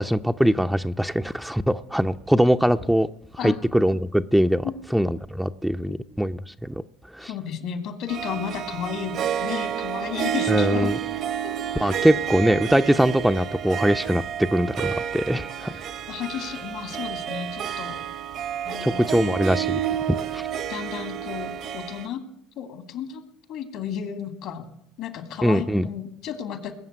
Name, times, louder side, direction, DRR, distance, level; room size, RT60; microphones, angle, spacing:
voice 1, 0.0-3.1 3.4-4.7 4.9-6.8 7.1-7.3 10.5-11.0 11.8-15.7 18.8-19.8 20.3-20.5 25.4-25.9, equal, 5° right, 7 dB, 0.6 m, -22 dB
voice 2, 7.3-11.0 11.4-12.1 16.1-18.0 18.6-19.0 20.7-22.2 22.6-23.2 23.5-24.7 25.0-26.7, left 8 dB, 65° left, 8 dB, 2.4 m, -33 dB
Harp, 8.1-22.1, right 9 dB, 60° right, 1.2 m, -30 dB
20.5 x 7.3 x 9.1 m, 0.76 s
hypercardioid pair, 60°, 0 cm